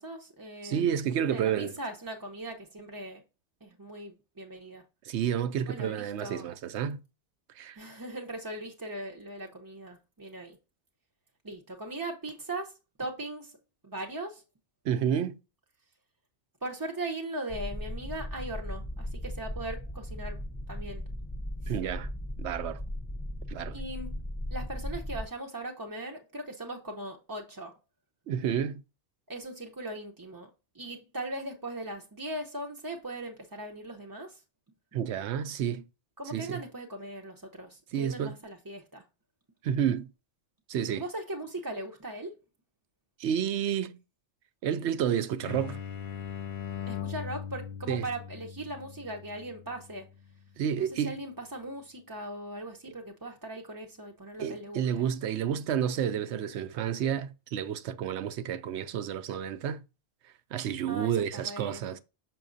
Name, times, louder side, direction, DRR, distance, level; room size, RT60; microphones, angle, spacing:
voice 1, 0.0-0.9 1.3-3.2 3.6-4.8 5.7-6.5 7.8-10.6 11.4-13.6 13.8-14.4 16.6-20.4 20.7-21.0 23.7-24.2 24.5-27.7 29.3-30.5 30.7-34.4 36.2-39.0 40.9-42.4 46.9-50.1 50.8-54.8 60.9-61.9, right 1 dB, 20° right, 0.6 m, -39 dB
voice 2, 0.6-1.7 5.0-7.0 7.6-7.8 14.8-15.4 21.7-22.1 22.4-22.8 23.5-23.8 28.3-28.8 34.9-35.8 36.3-36.6 37.9-38.4 39.6-40.1 40.7-41.1 43.2-44.0 44.6-45.8 47.9-48.1 50.6-51.2 54.4-59.8 60.5-62.0, right 9 dB, 75° right, 0.8 m, -30 dB
sound 1, 17.5-25.3, left 1 dB, 20° left, 0.5 m, -37 dB
sound 2, 45.4-50.9, left 8 dB, 50° left, 0.8 m, -40 dB
6.1 x 6.0 x 2.6 m
omnidirectional pair, 1.2 m